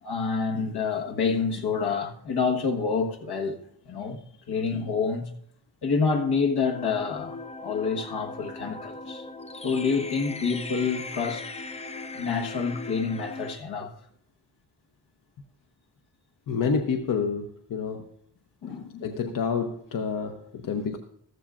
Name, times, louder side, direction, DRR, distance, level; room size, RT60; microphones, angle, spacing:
voice 1, 0.0-3.6 3.8-4.2 4.5-5.3 5.8-9.2 9.6-11.4 12.1-13.9 18.6-19.2 20.7-21.0, left 5 dB, 75° left, 1.4 m, -28 dB
sound 1, 6.7-13.6, left 3 dB, 15° left, 0.4 m, -38 dB
voice 2, 16.5-18.0 19.0-21.0, left 5 dB, 55° left, 0.8 m, -28 dB
14.5 x 14.0 x 2.5 m
wide cardioid pair, 165°, 40 cm